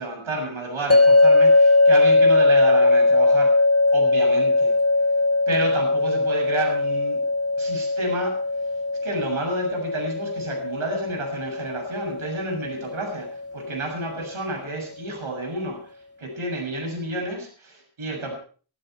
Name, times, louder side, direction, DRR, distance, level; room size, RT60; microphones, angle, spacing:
voice 1, 0.0-3.5 3.9-4.7 5.5-7.2 7.6-8.4 9.0-13.3 13.5-18.3, right 2 dB, 70° right, 2 dB, 7.2 m, -30 dB
sound 1, 0.9-14.0, left 2 dB, 30° left, 1.3 m, -20 dB
23.0 x 13.0 x 4.6 m, 0.41 s
wide cardioid pair, 85°, 50 cm